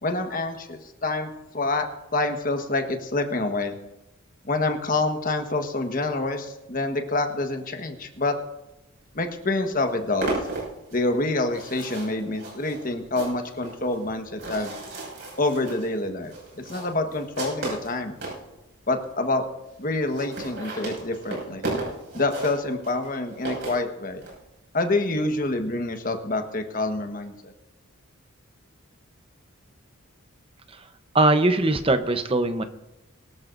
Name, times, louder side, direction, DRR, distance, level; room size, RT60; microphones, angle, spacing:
voice 1, 0.0-3.7 4.4-8.4 9.1-10.4 10.9-14.7 15.4-18.1 18.9-19.4 19.8-21.6 22.1-24.2 24.7-27.5, left 2 dB, 40° left, 5 dB, 1.3 m, -27 dB
sound 1, 9.2-9.3 9.6-18.4 19.0-19.1 19.3-19.4 19.6-19.7 20.0-24.3, right 2 dB, 55° right, 6.0 m, -34 dB
voice 2, 31.1-32.6, right 2 dB, 25° right, 8 dB, 0.8 m, -20 dB
23.0 x 13.0 x 2.6 m, 0.94 s
head